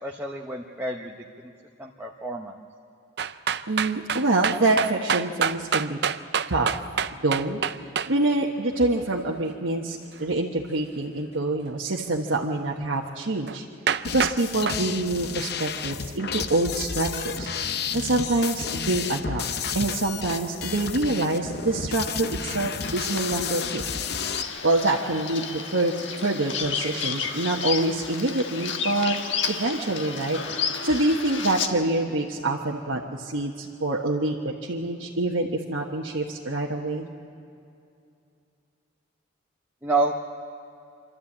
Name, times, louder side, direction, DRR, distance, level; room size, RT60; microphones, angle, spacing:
voice 1, 0.0-1.2 1.8-2.5 39.8-40.1, right 2 dB, 10° right, -1 dB, 0.8 m, -28 dB
sound 1, 3.2-8.1 13.5-13.6 13.9-14.4 14.7-14.8, right 7 dB, 55° right, 0.5 m, -26 dB
voice 2, 3.7-6.0 6.5-6.7 7.1-13.6 14.1-17.5 17.9-19.4 19.7-23.8 24.6-25.9 26.2-29.2 29.5-37.1, right 2 dB, 90° right, -2 dB, 1.3 m, -26 dB
sound 2, 14.0-24.4, left 6 dB, 55° left, 0.7 m, -32 dB
Bird vocalization bird call bird song, 22.8-31.7, left 6 dB, 75° left, 1.4 m, -32 dB
27.5 x 12.5 x 8.7 m, 2.6 s
head